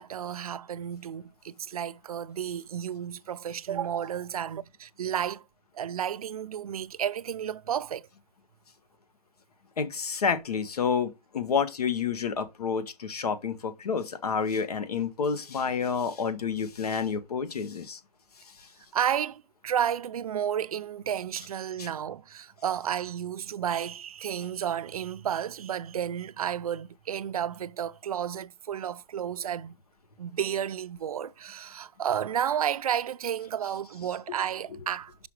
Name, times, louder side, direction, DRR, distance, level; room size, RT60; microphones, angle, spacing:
voice 1, 0.0-5.4 5.7-8.1 18.9-29.7 30.2-35.3, right 9 dB, 70° right, 0.5 m, -32 dB
voice 2, 9.8-18.0 21.8-21.9, left 6 dB, 80° left, 1.7 m, -29 dB
6.1 x 5.7 x 4.8 m
hypercardioid pair, 180°, 19 cm